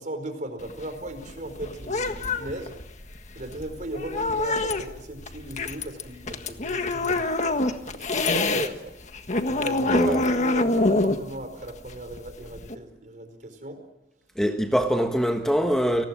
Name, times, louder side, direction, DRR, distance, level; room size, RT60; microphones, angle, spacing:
voice 1, 0.0-2.8 3.3-7.6 7.9-8.9 9.5-13.8, right 1 dB, 45° right, 4.7 m, -37 dB
sound 1, 0.6-8.7 9.0-12.8, left 2 dB, 40° left, 1.6 m, -26 dB
voice 2, 14.4-16.0, equal, 5° left, 1.4 m, -23 dB
30.0 x 19.5 x 7.5 m
head